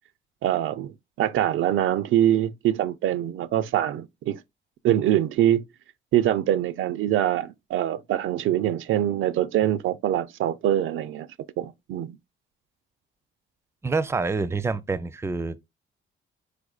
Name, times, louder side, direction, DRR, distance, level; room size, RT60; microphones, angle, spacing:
voice 1, 0.4-4.4 4.8-5.6 6.1-11.3 11.6-12.2, right 12 dB, 75° right, 0.4 m, -24 dB
voice 2, 13.8-15.6, right 4 dB, 15° right, 0.4 m, -27 dB
5.0 x 4.6 x 2.3 m
cardioid pair, 90°, 21 cm